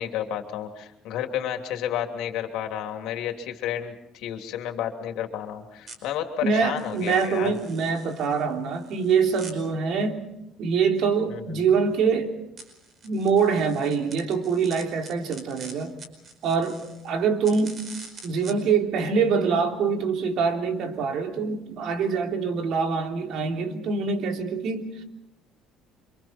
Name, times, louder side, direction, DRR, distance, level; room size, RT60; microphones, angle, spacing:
voice 1, 0.0-7.5 11.3-11.7, left 10 dB, 75° left, 4 dB, 3.1 m, -31 dB
sound 1, 5.9-6.0 6.8-9.5 12.6-17.1 17.4-18.5, right 3 dB, 40° right, 5.0 m, -45 dB
voice 2, 6.4-10.2 10.6-12.3 13.0-15.9 16.4-17.8 18.2-25.0, right 5 dB, 60° right, 3 dB, 3.2 m, -24 dB
29.0 x 26.0 x 4.5 m, 0.83 s
cardioid pair, 130°, 0 cm